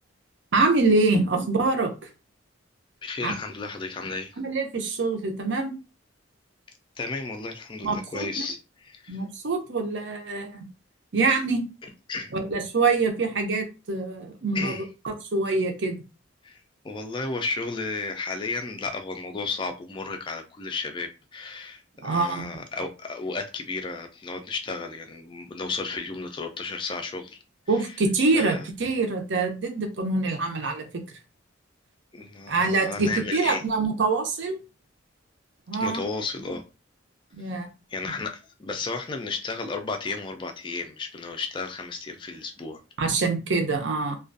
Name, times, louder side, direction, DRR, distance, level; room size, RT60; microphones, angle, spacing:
voice 1, 0.5-1.9 3.2-3.3 4.4-5.7 7.8-8.5 9.1-10.7 11.1-11.7 12.3-14.8 15.0-16.0 22.0-22.5 27.7-31.0 32.5-34.6 35.7-36.0 37.3-37.7 43.0-44.2, right 3 dB, 65° right, 0.6 m, -25 dB
voice 2, 3.0-4.4 7.0-9.2 12.1-12.3 14.5-14.9 16.4-27.4 27.8-27.9 28.3-28.7 32.1-33.6 35.8-36.6 37.9-42.8, left 3 dB, 25° left, 0.3 m, -33 dB
2.4 x 2.2 x 2.5 m
head